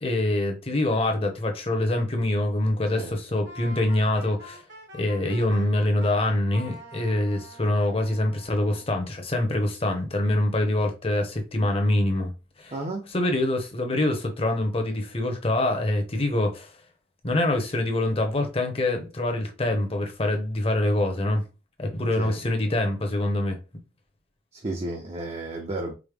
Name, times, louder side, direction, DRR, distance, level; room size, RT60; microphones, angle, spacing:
voice 1, 0.0-4.6 4.9-12.3 12.6-12.7 13.1-16.7 17.2-21.4 21.8-23.6, left 1 dB, 30° left, 0.8 m, -25 dB
Wind instrument woodwind instrument, 3.4-6.1 6.5-8.9, equal, 65° right, 1.3 m, -45 dB
voice 2, 12.7-13.1 22.2-22.4 24.5-25.9, right 2 dB, 35° right, 0.5 m, -32 dB
4.9 x 2.1 x 3.3 m
head